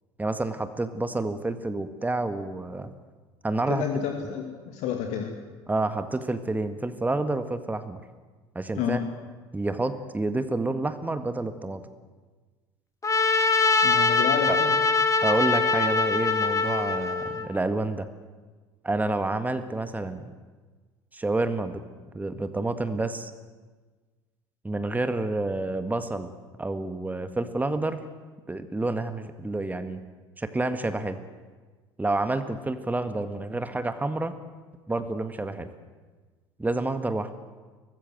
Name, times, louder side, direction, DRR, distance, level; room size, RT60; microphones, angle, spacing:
voice 1, 0.2-2.9 3.4-3.8 5.7-8.0 8.6-9.0 9.5-11.8 14.5-14.6 15.2-18.1 18.8-20.3 21.1-21.8 22.1-23.3 24.6-26.3 26.6-28.0 28.5-30.0 30.4-31.2 32.0-34.3 34.9-35.7 36.6-37.3, right 2 dB, 10° right, 9 dB, 1.8 m, -29 dB
voice 2, 3.7-5.4 8.8-9.0 13.8-14.8, left 8 dB, 55° left, 3 dB, 2.5 m, -30 dB
Trumpet, 13.0-17.5, left 4 dB, 20° left, 2.3 m, -23 dB
23.5 x 19.5 x 7.7 m, 1.4 s
figure-of-eight pair, 60°, 15 cm